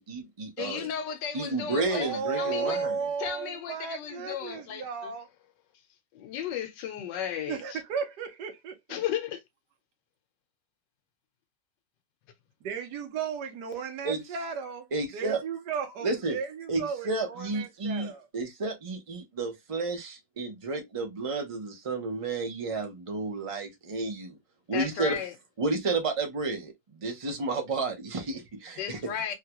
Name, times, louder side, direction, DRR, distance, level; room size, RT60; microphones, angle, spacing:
voice 1, 0.0-0.9 1.3-3.1 14.0-14.2 14.9-15.4 16.0-16.4 16.7-24.4 24.7-25.2 25.6-29.1, right 3 dB, 50° right, 0.4 m, -31 dB
voice 2, 0.6-2.8 3.2-5.1 6.1-7.6 8.9-9.4 24.7-25.3 28.8-29.3, left 9 dB, 80° left, 1.4 m, -34 dB
voice 3, 1.9-5.3 7.5-9.0 12.6-18.3, right 6 dB, 70° right, 1.5 m, -35 dB
3.6 x 2.3 x 2.9 m
omnidirectional pair, 1.9 m